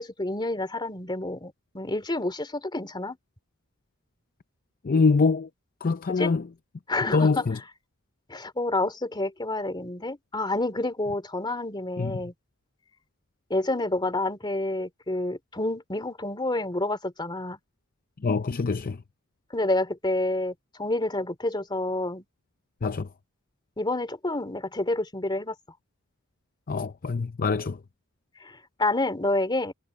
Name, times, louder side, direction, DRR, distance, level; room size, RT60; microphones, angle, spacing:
voice 1, 0.0-3.2 6.2-6.3 6.9-7.4 8.3-12.3 13.5-17.6 19.5-22.2 23.8-25.5 28.4-29.7, left 2 dB, 20° left, 3.1 m, -28 dB
voice 2, 4.8-5.5 5.8-6.5 7.1-7.6 12.0-12.2 18.2-19.0 22.8-23.1 26.7-27.8, left 4 dB, 40° left, 0.5 m, -24 dB
head